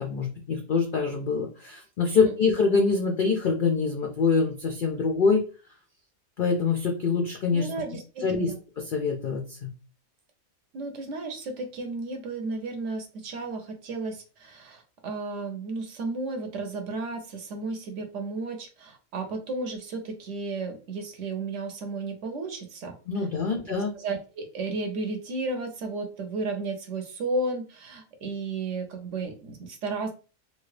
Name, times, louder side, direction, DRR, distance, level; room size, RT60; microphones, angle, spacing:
voice 1, 0.0-5.4 6.4-7.7 8.2-8.5 8.8-9.7 23.1-23.9, left 4 dB, 75° left, 1 dB, 0.4 m, -25 dB
voice 2, 7.5-8.6 10.7-22.9 23.9-30.1, right 3 dB, 65° right, 5 dB, 0.9 m, -33 dB
3.1 x 2.3 x 3.1 m, 0.35 s
omnidirectional pair, 1.5 m